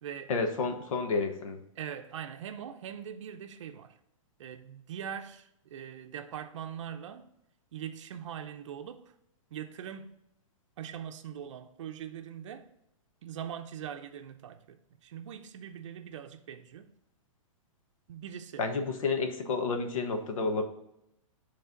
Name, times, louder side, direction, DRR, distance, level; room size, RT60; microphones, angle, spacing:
voice 1, 0.3-1.6 18.6-20.6, left 4 dB, 85° left, 1.2 m, -30 dB
voice 2, 1.8-4.0 4.4-7.3 7.7-9.0 9.5-10.2 10.8-12.7 13.2-16.9 18.1-18.6, right 9 dB, 65° right, 0.5 m, -42 dB
7.9 x 3.4 x 3.9 m
hypercardioid pair, 175°, 17 cm